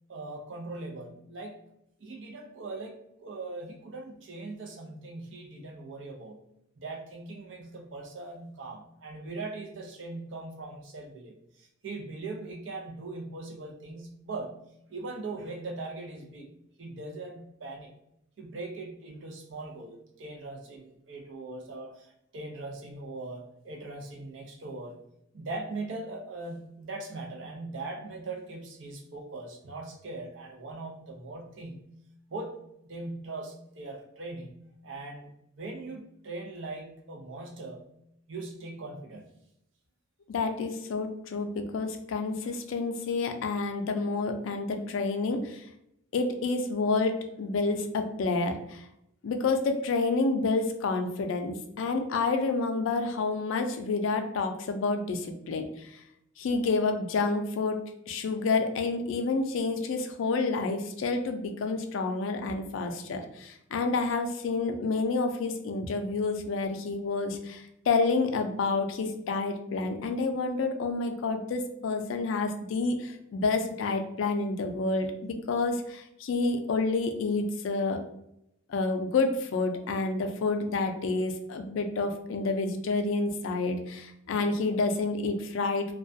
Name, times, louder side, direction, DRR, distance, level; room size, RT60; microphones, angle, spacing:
voice 1, 0.1-1.5 2.0-6.4 6.8-14.6 14.9-16.5 16.8-17.9 18.4-25.0 25.3-31.9 32.3-32.6 32.9-35.3 35.6-37.9 38.3-39.2, right 2 dB, 70° right, 1 dB, 0.5 m, -40 dB
voice 2, 40.3-45.6 46.1-48.8 49.2-55.7 56.4-57.8 58.1-78.0 78.7-85.9, left 3 dB, 80° left, 6 dB, 0.4 m, -29 dB
2.3 x 2.1 x 2.5 m, 0.79 s
head